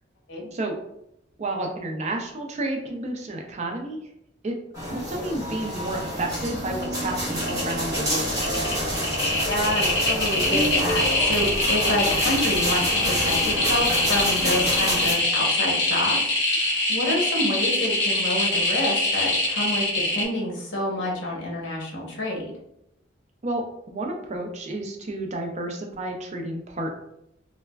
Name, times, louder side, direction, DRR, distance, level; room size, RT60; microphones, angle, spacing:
voice 1, 1.4-4.0 4.4-4.5 4.9-8.6 23.4-26.9, right 2 dB, 35° right, 3 dB, 0.4 m, -31 dB
sound 1, 4.7-15.1, equal, 20° right, 0.8 m, -28 dB
sound 2, 6.8-7.1 7.3-8.0 8.3-20.2, left 2 dB, 60° left, 1.1 m, -24 dB
voice 2, 9.5-22.5, left 1 dB, 80° left, -2 dB, 0.8 m, -28 dB
3.2 x 2.0 x 2.2 m, 0.79 s
head